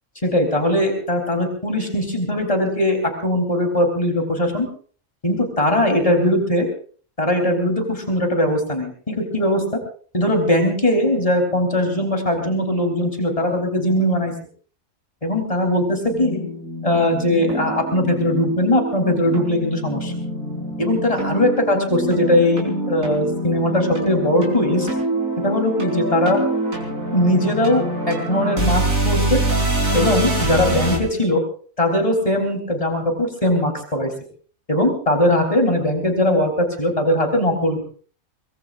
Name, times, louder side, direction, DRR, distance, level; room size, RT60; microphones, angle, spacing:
voice 1, 0.2-4.7 5.2-6.7 7.2-9.8 10.1-14.3 15.2-16.4 16.8-20.1 20.8-24.9 25.4-26.4 27.1-29.4 29.9-31.4 31.8-34.1 34.7-37.8, left 1 dB, 25° left, 3 dB, 4.1 m, -20 dB
sound 1, 16.1-31.0, right 1 dB, 70° right, 5.1 m, -25 dB
24.0 x 22.0 x 2.6 m, 0.43 s
omnidirectional pair, 1.5 m